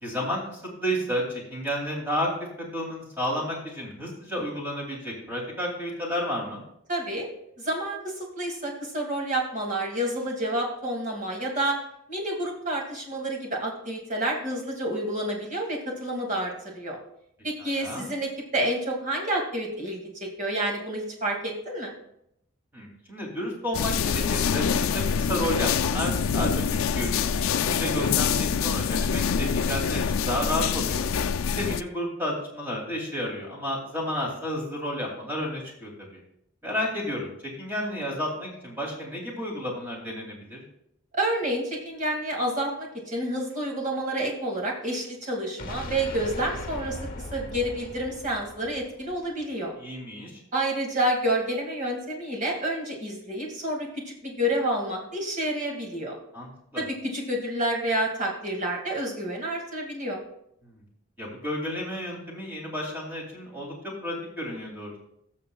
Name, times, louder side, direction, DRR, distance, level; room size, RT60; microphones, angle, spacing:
voice 1, 0.0-2.3 2.7-6.6 17.6-18.1 22.7-31.0 31.5-36.2 36.6-37.3 37.6-40.6 49.8-50.3 56.3-56.5 56.7-56.8 60.6-60.8 61.2-64.9, equal, 10° right, -3 dB, 2.7 m, -31 dB
voice 2, 6.9-7.3 7.6-11.8 12.1-17.0 17.4-20.0 20.4-21.9 41.1-47.0 47.3-49.7 50.5-56.2 56.8-60.2, right 1 dB, 40° right, 0 dB, 2.2 m, -29 dB
sound 1, 23.7-31.8, left 6 dB, 90° left, 0.4 m, -25 dB
sound 2, 45.6-49.5, left 2 dB, 45° left, 0.9 m, -38 dB
18.5 x 6.7 x 2.3 m, 0.76 s
head